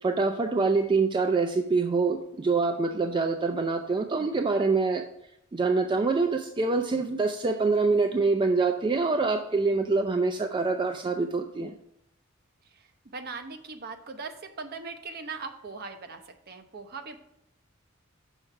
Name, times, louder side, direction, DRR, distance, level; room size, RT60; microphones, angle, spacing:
voice 1, 0.0-5.1 5.5-11.7, right 3 dB, 25° right, 6 dB, 0.3 m, -25 dB
voice 2, 13.1-16.2 16.5-17.2, right 4 dB, 50° right, 7 dB, 0.7 m, -39 dB
6.4 x 4.4 x 5.7 m, 0.79 s
head